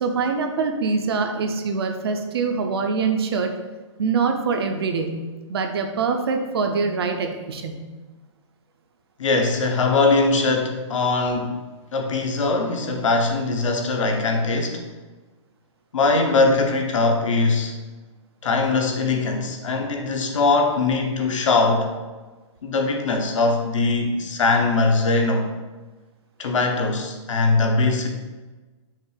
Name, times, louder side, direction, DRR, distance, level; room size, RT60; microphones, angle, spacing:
voice 1, 0.0-3.5 4.0-5.2 5.5-7.8, right 5 dB, 50° right, 5 dB, 0.5 m, -24 dB
voice 2, 9.2-11.6 11.9-14.8 15.9-17.8 18.4-21.9 22.6-25.5 26.4-28.1, left 3 dB, 75° left, 3 dB, 0.8 m, -21 dB
5.6 x 2.3 x 3.2 m, 1.3 s
hypercardioid pair, 170°, 16 cm